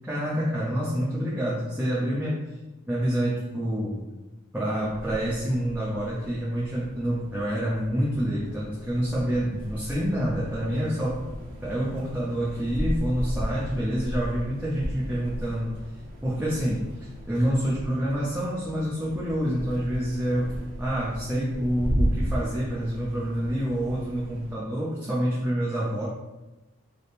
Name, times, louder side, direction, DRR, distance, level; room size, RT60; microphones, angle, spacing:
voice 1, 0.1-2.5 2.9-4.0 4.5-11.2 11.6-15.8 16.2-16.8 17.3-26.1, equal, 5° right, -8 dB, 0.4 m, -27 dB
sound 1, 4.8-24.5, equal, 75° right, 0.8 m, -35 dB
3.3 x 2.0 x 4.1 m, 1.1 s
head